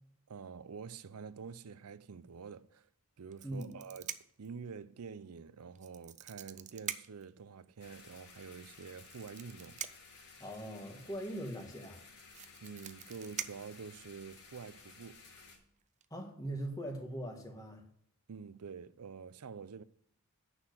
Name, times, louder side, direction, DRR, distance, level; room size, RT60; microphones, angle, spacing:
voice 1, 0.3-2.9 3.2-9.8 12.6-15.2 18.3-19.8, right 5 dB, 90° right, 0.5 m, -47 dB
sound 1, 3.3-4.5 5.8-7.3 8.7-10.2 11.7-11.8 12.0-14.4 15.2-15.5 15.8-16.1, right 10 dB, 30° right, 0.4 m, -44 dB
voice 2, 3.4-3.7 10.4-12.0 16.1-17.8, right 1 dB, 15° left, 1.7 m, -41 dB
sound 2, 7.8-15.6, left 4 dB, 80° left, 3.5 m, -56 dB
9.5 x 6.4 x 6.6 m
head